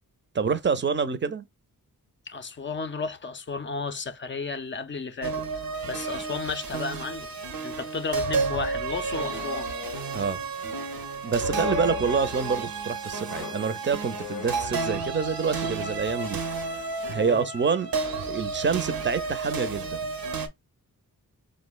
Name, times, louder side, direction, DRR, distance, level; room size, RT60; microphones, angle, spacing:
voice 1, 0.3-1.5 10.1-10.4 11.2-16.4 17.1-17.9 18.3-20.1, right 5 dB, 35° right, 0.5 m, -27 dB
voice 2, 2.3-5.4 5.8-7.3 7.6-9.7 17.1-17.5, left 4 dB, 35° left, 0.4 m, -33 dB
sound 1, 5.2-20.5, right 4 dB, 80° right, 0.7 m, -31 dB
sound 2, 9.1-10.3 11.2-12.6 13.1-15.1 16.0-16.3, left 7 dB, 85° left, 0.6 m, -37 dB
4.9 x 2.1 x 2.2 m
cardioid pair, 60°, 35 cm